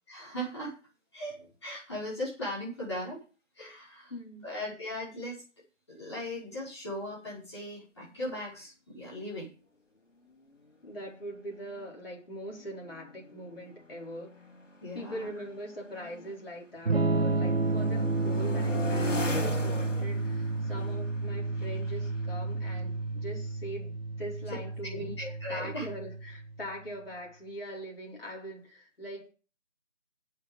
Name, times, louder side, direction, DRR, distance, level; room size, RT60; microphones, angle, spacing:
voice 1, 0.1-0.8 1.1-3.2 3.6-4.1 4.4-5.4 5.9-9.5 14.8-15.3 24.9-25.9, equal, 20° left, 5.4 m, -38 dB
voice 2, 4.1-4.5 10.8-14.4 14.9-25.2 25.5-29.3, equal, 50° left, 4.3 m, -42 dB
sound 1, 11.2-11.3 11.5-11.9 12.6-16.5 16.9-23.5, left 2 dB, 85° left, 3.1 m, -40 dB
Electric guitar / Strum, 16.9-26.6, right 3 dB, 55° right, 0.9 m, -31 dB
8.5 x 7.0 x 8.5 m
figure-of-eight pair, 175°, 36 cm